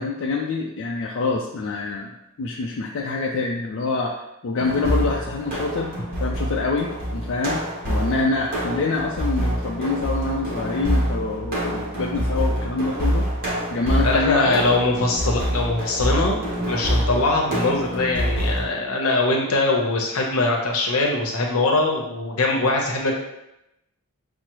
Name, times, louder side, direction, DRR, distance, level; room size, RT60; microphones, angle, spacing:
voice 1, 0.0-2.1 2.4-4.1 4.4-5.9 6.2-13.3 13.7-14.6, left 3 dB, 60° left, -1 dB, 0.4 m, -26 dB
sound 1, 4.6-18.6, equal, 45° right, 1.1 m, -26 dB
voice 2, 14.0-16.4 16.7-23.2, left 2 dB, 80° left, 0 dB, 0.8 m, -22 dB
5.9 x 2.0 x 3.0 m, 0.88 s
head